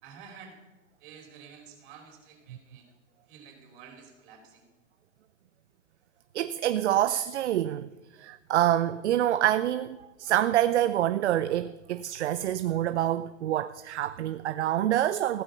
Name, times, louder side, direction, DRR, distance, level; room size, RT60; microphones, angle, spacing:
voice 1, 0.0-0.6 1.0-2.9 3.3-4.7, right 6 dB, 40° right, 4.4 m, -50 dB
voice 2, 6.3-7.9 8.2-15.4, right 12 dB, 60° right, 0.7 m, -26 dB
16.0 x 12.0 x 5.5 m
hypercardioid pair, 145°, 38 cm